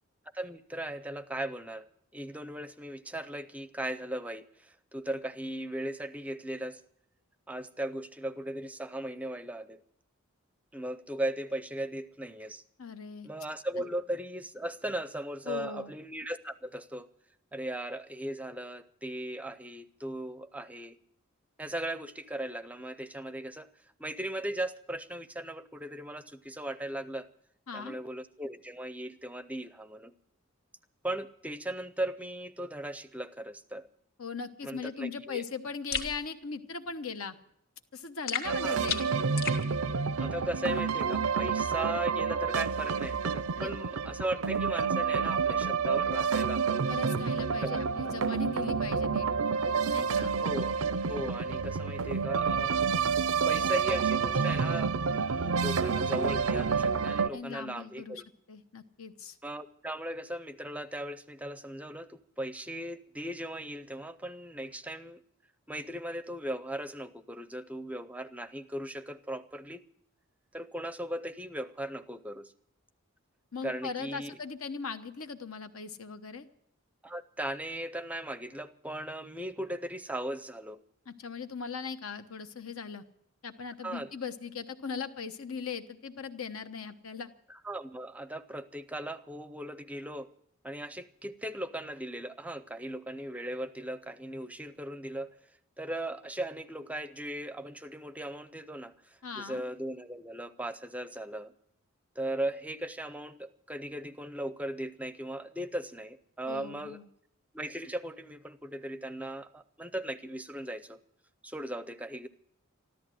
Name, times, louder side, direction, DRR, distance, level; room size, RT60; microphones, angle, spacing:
voice 1, 0.3-1.9 2.1-6.8 7.5-9.8 10.7-12.6 13.2-17.1 17.5-21.0 21.6-23.7 24.0-27.3 27.7-30.1 31.0-33.9 34.6-35.4 38.5-38.8 40.2-46.8 47.6-47.8 50.3-50.8 51.1-52.8 53.4-58.2 59.4-65.2 65.7-69.8 70.5-72.5 73.6-74.4 77.0-80.8 83.8-84.1 87.5-90.3 90.6-95.3 95.8-101.5 102.2-107.0 107.5-111.0 111.4-112.3, right 1 dB, 5° right, 13 dB, 0.5 m, -38 dB
voice 2, 12.8-13.3 15.4-15.9 27.7-28.0 34.2-37.4 37.9-39.1 43.6-43.7 46.9-49.3 49.9-50.3 57.3-58.2 58.5-59.4 73.5-76.5 81.0-83.0 83.4-87.3 99.2-99.6 106.5-107.1, left 5 dB, 80° left, 9 dB, 1.1 m, -39 dB
sound 1, 35.9-36.1 38.3-39.6, left 6 dB, 45° left, 2.0 m, -33 dB
sound 2, 38.4-57.3, right 5 dB, 80° right, 0.5 m, -29 dB
14.0 x 13.0 x 7.6 m, 0.74 s
head